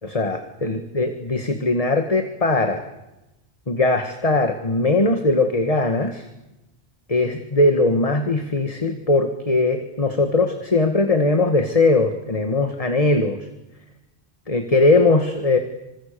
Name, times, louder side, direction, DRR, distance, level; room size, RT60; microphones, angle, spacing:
voice 1, 0.0-2.8 3.7-6.3 7.1-13.4 14.5-15.6, left 2 dB, 35° left, 6 dB, 2.0 m, -20 dB
29.5 x 27.0 x 7.0 m, 0.95 s
omnidirectional pair, 1.1 m